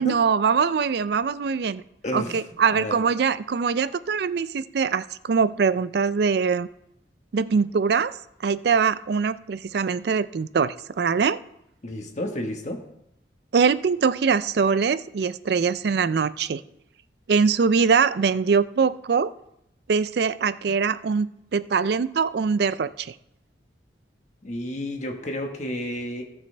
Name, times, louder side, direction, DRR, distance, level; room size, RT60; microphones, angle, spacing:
voice 1, 0.0-1.8 2.1-6.7 7.3-8.2 8.4-11.4 13.5-16.6 17.3-19.3 19.9-21.3 21.5-23.1, right 5 dB, 55° right, 16 dB, 0.4 m, -23 dB
voice 2, 2.0-2.4 2.7-3.0 11.8-12.8 24.4-26.2, left 1 dB, 40° left, 3 dB, 1.4 m, -31 dB
18.0 x 6.1 x 3.3 m, 0.80 s
head